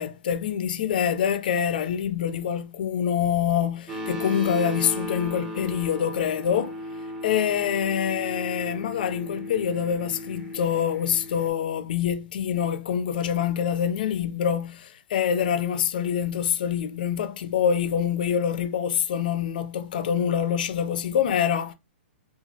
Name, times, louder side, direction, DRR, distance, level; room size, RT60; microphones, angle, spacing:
voice 1, 0.0-6.8 7.2-21.7, left 8 dB, 50° left, 0.4 m, -25 dB
sound 1, 3.9-11.5, equal, 5° right, 0.6 m, -35 dB
3.0 x 2.3 x 2.6 m
hypercardioid pair, 170°, 6 cm